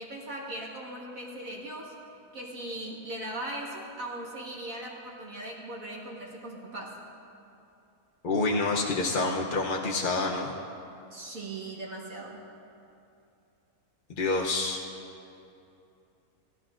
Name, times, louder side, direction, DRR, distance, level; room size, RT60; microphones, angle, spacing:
voice 1, 0.0-1.9 2.3-7.0 11.1-12.4, right 1 dB, 65° right, -3 dB, 1.8 m, -39 dB
voice 2, 8.2-10.5 14.1-14.8, left 3 dB, 45° left, -1 dB, 0.7 m, -27 dB
20.0 x 12.5 x 2.5 m, 2.7 s
omnidirectional pair, 1.6 m